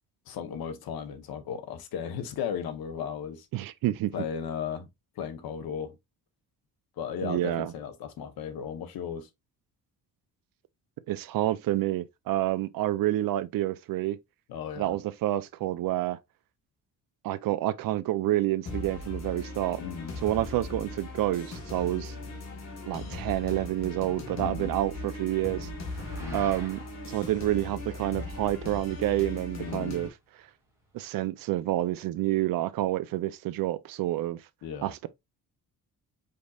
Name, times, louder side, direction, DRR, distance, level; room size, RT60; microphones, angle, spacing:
voice 1, 0.3-3.5 4.1-4.9 5.2-5.9 7.0-9.3 14.5-15.0 19.8-20.2 24.4-24.7 26.2-26.5 29.6-30.0 34.6-34.9, left 7 dB, 85° left, 1.0 m, -35 dB
voice 2, 3.5-4.1 7.2-7.7 11.1-14.2 14.8-16.2 17.2-19.8 20.2-22.1 22.9-25.7 26.3-30.1 30.9-34.4 34.8-35.1, right 14 dB, 75° right, 0.5 m, -28 dB
sound 1, 18.7-30.1, left 2 dB, 50° left, 1.5 m, -38 dB
sound 2, 21.5-31.1, right 2 dB, 5° right, 1.7 m, -54 dB
5.2 x 4.1 x 2.3 m
cardioid pair, 165°, 35 cm